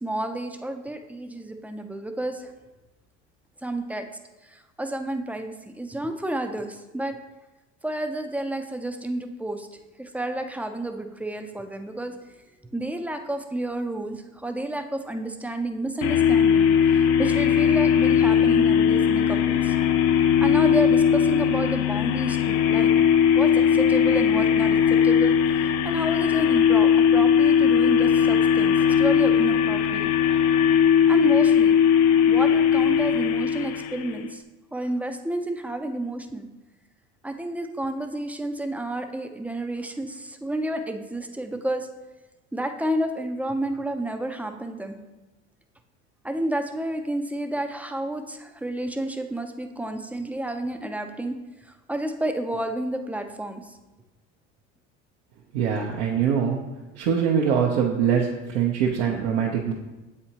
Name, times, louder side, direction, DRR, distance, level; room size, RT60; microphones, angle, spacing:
voice 1, 0.0-2.5 3.6-4.1 4.4-7.1 7.8-9.7 10.0-12.2 12.7-19.7 20.4-22.9 23.3-30.1 31.1-31.8 32.3-34.4 34.7-36.5 37.2-41.9 42.5-45.0 46.2-51.4 51.6-53.8, right 1 dB, 5° right, 6 dB, 0.4 m, -30 dB
sound 1, 16.0-34.3, left 8 dB, 50° left, 0.5 m, -19 dB
voice 2, 55.5-56.6 57.0-59.7, right 7 dB, 70° right, -1 dB, 0.8 m, -23 dB
7.7 x 4.3 x 2.9 m, 1.1 s
hypercardioid pair, 80°, 35 cm